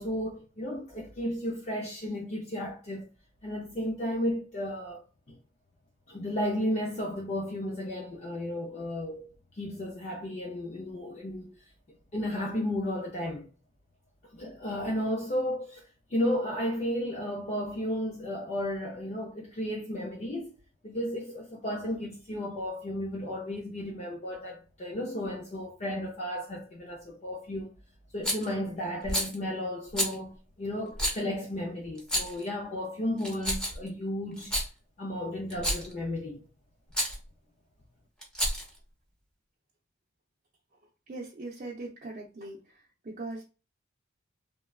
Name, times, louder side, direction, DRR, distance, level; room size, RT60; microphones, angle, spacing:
voice 1, 0.0-3.1 3.4-5.4 6.1-9.3 9.5-11.5 12.1-13.5 14.2-20.5 20.8-27.7 28.1-34.6 35.0-36.4, left 1 dB, 35° left, 0.5 m, -33 dB
Rattle, 28.2-28.5 29.1-29.3 30.0-30.1 31.0-31.2 32.0-32.4 33.2-33.9 34.4-34.7 35.5-35.9 36.9-37.2 38.2-38.8, equal, 5° left, 0.8 m, -29 dB
voice 2, 41.1-42.6 43.0-43.4, right 2 dB, 40° right, 0.6 m, -39 dB
3.2 x 2.2 x 2.3 m
head